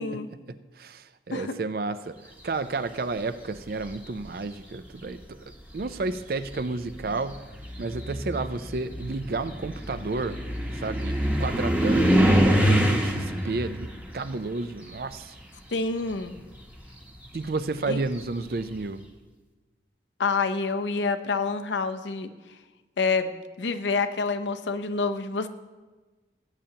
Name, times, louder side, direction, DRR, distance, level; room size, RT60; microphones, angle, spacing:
voice 1, 0.5-2.1 2.4-7.4 7.8-10.4 10.8-13.9 14.1-15.3 17.3-19.0, right 3 dB, 55° right, 13 dB, 0.4 m, -31 dB
sound 1, 3.5-4.1 5.1-5.2 5.8-15.7 15.9-18.6, equal, 10° right, 0.9 m, -26 dB
voice 2, 15.7-16.3 17.9-18.0 20.2-22.3 23.0-25.5, left 4 dB, 85° left, 8 dB, 0.7 m, -27 dB
17.5 x 8.8 x 2.9 m, 1.2 s
head